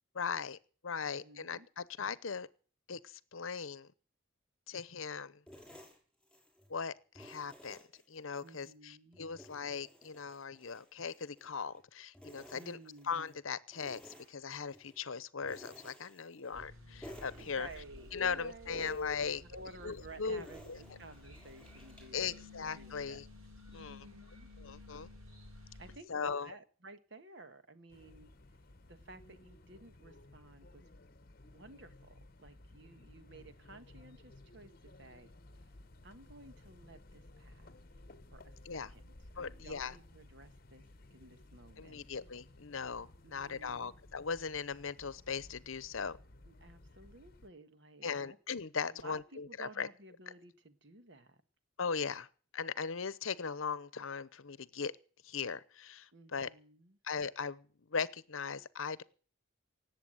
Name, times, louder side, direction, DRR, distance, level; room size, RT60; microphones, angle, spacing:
voice 1, 0.1-0.6 0.8-2.5 2.9-3.9 4.7-5.4 6.7-7.8 8.1-12.8 13.0-17.7 18.1-19.4 19.8-20.8 22.1-23.3 23.7-24.1 24.6-25.1 26.1-26.5 38.6-38.9 39.4-39.9 41.8-46.2 48.0-49.9 51.8-52.3 52.5-54.9 55.2-56.5 57.0-59.0, left 5 dB, 75° left, 0.8 m, -39 dB
voice 2, 1.0-1.7 8.4-9.2 12.5-13.1 17.3-19.0 19.4-22.4 22.7-23.2 23.7-24.5 25.8-28.3 28.9-30.8 31.4-35.3 35.6-35.7 36.0-37.7 38.3-39.0 39.3-42.1 43.2-43.9 46.5-48.4 48.8-51.4 56.1-57.0, right 2 dB, 55° right, 1.5 m, -54 dB
sound 1, 5.5-6.7 7.2-8.7 9.1-11.8 12.1-13.4 13.7-15.0 15.4-16.7 17.0-18.3 18.7-22.2, equal, 5° left, 6.1 m, -56 dB
sound 2, 16.5-26.0, left 2 dB, 85° right, 6.5 m, -54 dB
sound 3, 27.9-47.5, left 2 dB, 45° left, 0.9 m, -57 dB
18.5 x 8.3 x 7.9 m
head